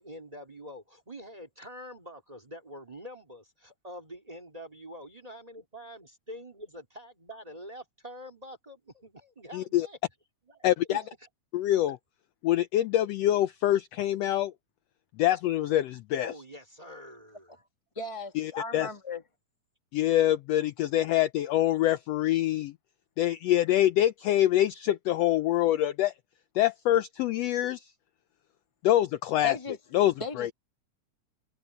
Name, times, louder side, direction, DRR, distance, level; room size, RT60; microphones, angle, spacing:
voice 1, 0.0-10.0 10.5-11.3 16.2-17.6, equal, 15° right, 2.2 m, -45 dB
voice 2, 9.5-9.9 10.6-11.0 11.5-12.0 12.4-14.5 15.2-16.3 18.3-18.9 19.9-22.7 23.2-26.1 26.5-27.9 28.8-29.6 29.9-30.5, left 13 dB, 80° left, 1.5 m, -25 dB
voice 3, 17.9-19.2 29.4-29.8 30.2-30.5, left 2 dB, 25° left, 0.7 m, -37 dB
omnidirectional pair, 3.5 m